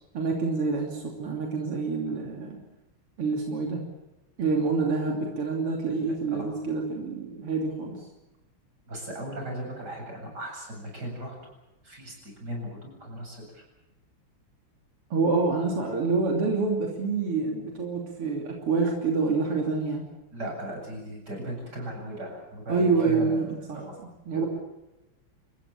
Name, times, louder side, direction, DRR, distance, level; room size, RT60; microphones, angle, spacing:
voice 1, 0.1-2.6 3.2-3.8 4.4-8.0 15.1-20.0 22.7-23.8 24.3-24.5, right 4 dB, 90° right, 1 dB, 4.0 m, -27 dB
voice 2, 6.1-6.5 8.9-11.3 11.8-13.6 20.3-24.0 24.3-24.5, right 1 dB, 45° right, 0 dB, 8.6 m, -37 dB
29.0 x 15.5 x 8.7 m, 0.98 s
omnidirectional pair, 2.4 m